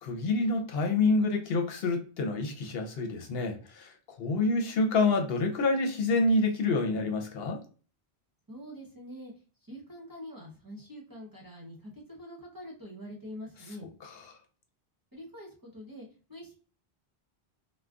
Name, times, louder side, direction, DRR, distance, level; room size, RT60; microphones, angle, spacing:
voice 1, 0.0-7.6 14.0-14.4, left 3 dB, 70° left, 0.8 m, -28 dB
voice 2, 8.5-9.3 9.6-13.9 15.1-16.6, equal, 25° right, 0.7 m, -45 dB
2.4 x 2.1 x 3.5 m
omnidirectional pair, 1.0 m